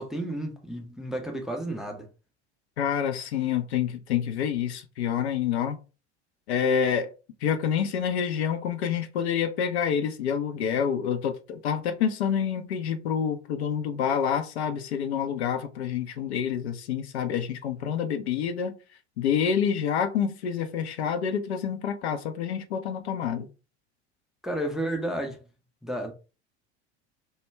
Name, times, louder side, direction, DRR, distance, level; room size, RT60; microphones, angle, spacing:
voice 1, 0.0-2.1 24.4-25.5 25.8-26.1, right 1 dB, ahead, 0.4 m, -32 dB
voice 2, 2.8-5.8 6.5-7.1 7.4-18.8 19.2-23.5, left 8 dB, 70° left, 0.5 m, -27 dB
2.2 x 2.1 x 3.2 m
figure-of-eight pair, 75°, 34 cm